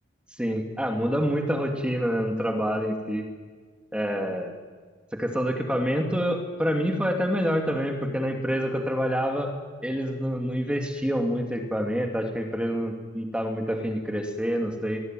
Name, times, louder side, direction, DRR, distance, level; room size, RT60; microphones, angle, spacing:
voice 1, 0.4-3.2 3.9-4.5 5.2-9.5 9.8-15.0, equal, 5° right, 2 dB, 2.7 m, -27 dB
25.0 x 20.5 x 9.3 m, 1.5 s
head